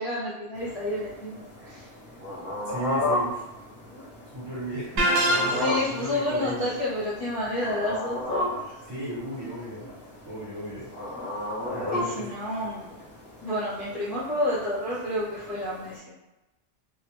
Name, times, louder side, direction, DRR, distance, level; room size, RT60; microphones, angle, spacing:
voice 1, 0.0-1.9 5.6-8.8 11.9-13.0 13.4-16.1, left 1 dB, 40° left, -9 dB, 0.7 m, -30 dB
sound 1, 0.5-16.0, left 1 dB, 5° left, 0.8 m, -35 dB
voice 2, 2.7-3.4 4.3-6.7 8.9-9.9 10.3-10.9 11.7-12.3, right 1 dB, 25° right, -9 dB, 0.7 m, -35 dB
sound 2, 5.0-6.0, right 1 dB, 65° right, 0.7 m, -24 dB
2.1 x 2.1 x 3.0 m, 1.0 s
omnidirectional pair, 1.1 m